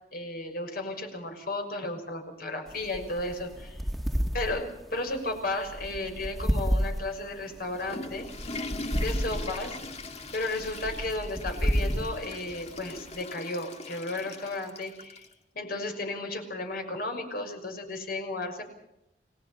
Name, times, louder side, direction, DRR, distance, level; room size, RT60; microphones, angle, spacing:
voice 1, 0.1-3.8 4.3-8.3 9.0-9.8 10.3-15.3 15.5-18.6, left 2 dB, 60° left, 5 dB, 6.1 m, -34 dB
sound 1, 2.7-13.2, equal, ahead, 1.9 m, -32 dB
Water / Toilet flush, 7.5-15.3, left 2 dB, 40° left, 2.1 m, -41 dB
30.0 x 20.0 x 5.8 m, 0.83 s
head